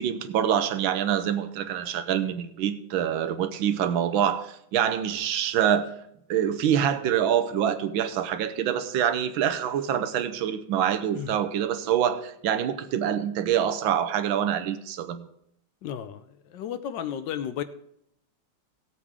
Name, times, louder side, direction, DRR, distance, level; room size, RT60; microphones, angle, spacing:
voice 1, 0.0-5.9 6.3-15.3, right 9 dB, 80° right, 10 dB, 1.5 m, -25 dB
voice 2, 15.8-16.2 16.5-17.6, left 9 dB, 70° left, 11 dB, 1.2 m, -33 dB
16.5 x 8.4 x 3.6 m, 0.74 s
omnidirectional pair, 2.2 m